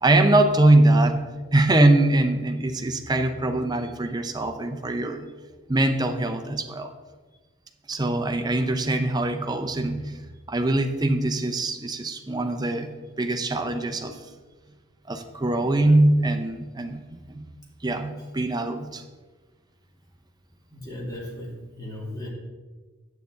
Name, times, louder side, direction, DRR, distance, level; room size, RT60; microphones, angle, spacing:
voice 1, 0.0-5.3 5.7-6.9 7.9-10.1 10.5-12.9 13.2-14.2 15.1-17.4 17.8-19.0, right 2 dB, 20° right, 6 dB, 0.7 m, -22 dB
voice 2, 20.7-22.3, left 1 dB, 20° left, -3 dB, 2.2 m, -36 dB
9.2 x 8.3 x 3.9 m, 1.3 s
head